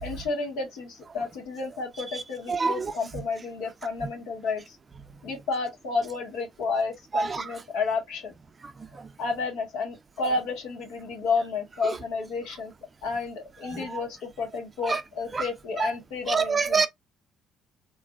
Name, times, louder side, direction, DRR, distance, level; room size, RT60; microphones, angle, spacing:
voice 1, 0.0-4.8 5.2-8.3 9.2-12.7 13.0-16.9, left 4 dB, 85° left, 1.4 m, -31 dB
voice 2, 2.5-2.9 7.1-7.4 13.7-14.0 14.9-15.0 15.3-15.4 15.8-15.9 16.3-16.9, right 5 dB, 30° right, 0.5 m, -25 dB
3.3 x 2.5 x 2.3 m
supercardioid pair, 80°, 0 cm